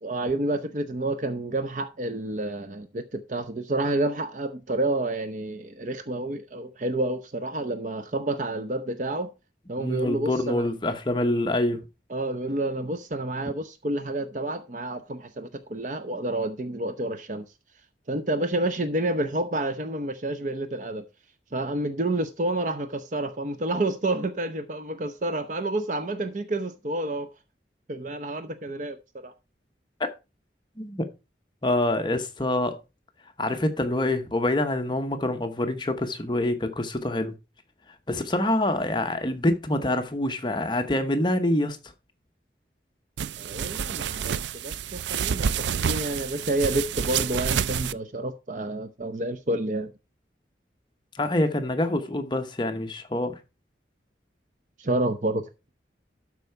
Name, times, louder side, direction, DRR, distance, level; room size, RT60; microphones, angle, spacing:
voice 1, 0.0-9.3 9.7-10.7 12.1-17.4 18.1-21.0 21.5-27.3 27.9-29.0 29.2-29.3 43.4-44.3 44.6-49.9 54.8-55.7, right 2 dB, 45° right, 0.6 m, -29 dB
voice 2, 9.8-11.8 30.0-30.1 30.8-31.1 31.6-32.8 33.4-37.3 38.1-41.8 51.1-53.4, left 1 dB, 25° left, 0.9 m, -26 dB
sound 1, 43.2-47.9, right 7 dB, 80° right, 0.4 m, -28 dB
12.0 x 4.7 x 4.5 m
head